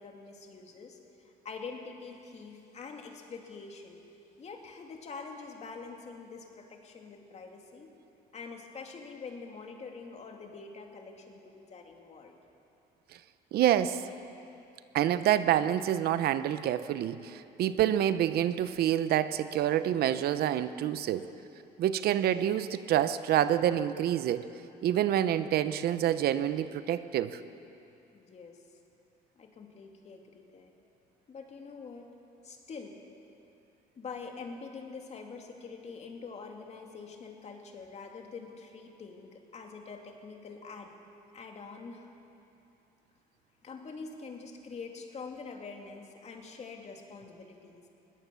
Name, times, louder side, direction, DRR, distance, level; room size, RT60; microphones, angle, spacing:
voice 1, 0.0-4.0 4.4-8.0 8.3-12.4 28.1-28.6 29.4-30.7 31.3-32.1 32.4-33.0 34.0-40.9 41.3-42.1 43.6-47.8, left 4 dB, 40° left, 2 dB, 2.6 m, -45 dB
voice 2, 13.5-14.0 14.9-21.2 21.8-24.4 24.8-27.4, right 11 dB, 70° right, 12 dB, 0.8 m, -27 dB
21.0 x 17.5 x 7.0 m, 2.8 s
cardioid pair, 110°, 17 cm